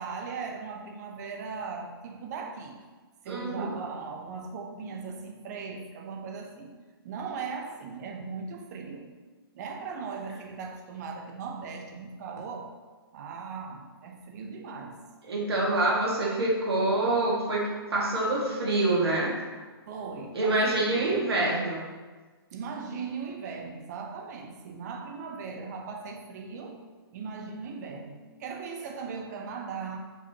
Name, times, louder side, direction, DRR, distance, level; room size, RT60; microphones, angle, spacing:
voice 1, 0.0-2.8 3.2-6.8 7.0-9.1 9.5-12.7 13.1-15.0 19.9-21.1 22.5-26.8 27.1-30.0, right 5 dB, 45° right, 2 dB, 0.9 m, -38 dB
voice 2, 3.3-3.7 15.3-19.4 20.3-21.8, right 2 dB, 80° right, -3 dB, 1.9 m, -26 dB
6.4 x 5.7 x 2.9 m, 1.4 s
hypercardioid pair, 140°, 13 cm